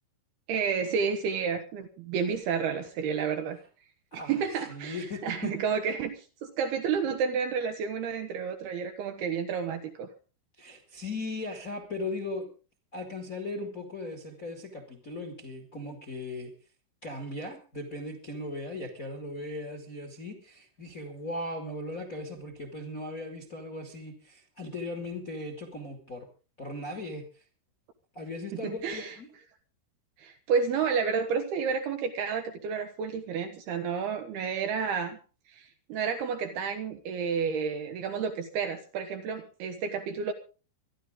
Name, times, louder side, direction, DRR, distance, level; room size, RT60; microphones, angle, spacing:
voice 1, 0.5-3.6 4.1-10.1 28.6-29.2 30.2-35.2 35.5-40.3, right 6 dB, 70° right, 6 dB, 2.7 m, -30 dB
voice 2, 4.1-4.4 4.7-5.5 10.6-12.5 12.9-16.5 17.0-26.3 26.6-27.2 28.1-29.3, left 2 dB, 30° left, 4 dB, 1.7 m, -38 dB
24.5 x 11.5 x 3.8 m, 0.35 s
omnidirectional pair, 5.5 m